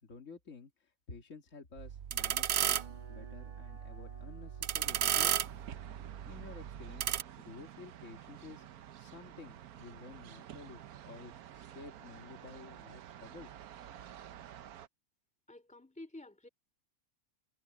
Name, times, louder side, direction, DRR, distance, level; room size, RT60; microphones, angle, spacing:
voice 1, 0.0-5.4 6.3-7.1 7.4-8.7 9.0-13.5, left 4 dB, 55° left, 2.5 m, -52 dB
sound 1, 1.8-7.2, right 10 dB, 60° right, 0.8 m, -34 dB
sound 2, 2.7-8.9, right 3 dB, 30° right, 1.5 m, -59 dB
sound 3, 4.8-14.9, right 11 dB, 80° right, 1.3 m, -51 dB
voice 2, 15.5-16.5, left 2 dB, 5° left, 2.8 m, -50 dB
omnidirectional pair, 1.5 m